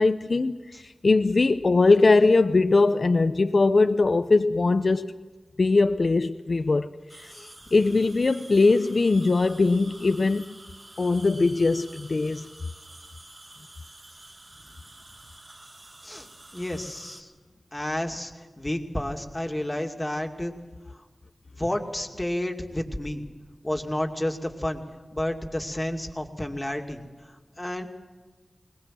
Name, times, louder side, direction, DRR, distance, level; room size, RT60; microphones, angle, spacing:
voice 1, 0.0-5.1 5.6-10.4 11.0-12.5, left 3 dB, 60° left, 0.6 m, -21 dB
sound 1, 7.1-17.2, right 2 dB, 55° right, 4.2 m, -48 dB
voice 2, 16.5-17.3 17.7-18.3 18.6-20.5 21.6-23.2 23.6-24.8 25.1-27.0 27.6-27.9, left 1 dB, 20° left, 2.5 m, -30 dB
21.5 x 20.0 x 7.6 m
cardioid pair, 50°, 0 cm